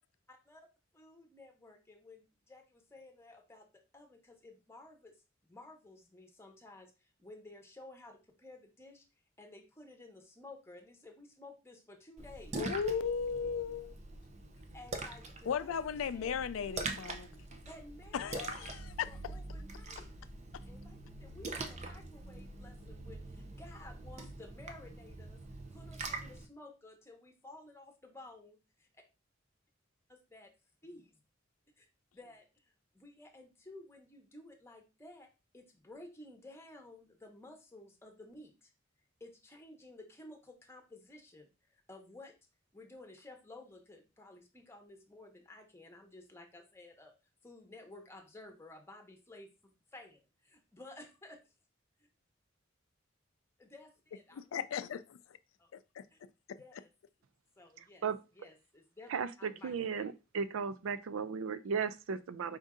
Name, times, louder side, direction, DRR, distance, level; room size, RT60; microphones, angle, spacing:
voice 1, 0.3-0.7 0.9-5.1 5.4-9.0 9.4-12.6 14.7-16.4 17.7-18.7 19.1-20.1 20.7-25.4 25.7-29.0 30.1-30.5 30.8-31.2 31.8-31.9 32.1-32.5 32.9-35.3 35.5-38.7 39.2-42.3 42.7-47.1 47.4-49.5 49.9-51.4 53.6-54.6 55.6-55.7 56.1-56.2 56.6-56.9 57.6-58.1 58.4-59.1 59.4-60.1, left 2 dB, 15° left, 1.0 m, -54 dB
Splash splatter, 12.2-26.5, right 3 dB, 35° right, 0.6 m, -44 dB
voice 2, 12.6-13.9 15.4-17.3 18.1-19.1 54.3-55.2 56.0-56.1, left 7 dB, 85° left, 0.4 m, -36 dB
voice 3, 59.1-62.6, right 6 dB, 85° right, 0.4 m, -35 dB
5.1 x 2.7 x 3.6 m
head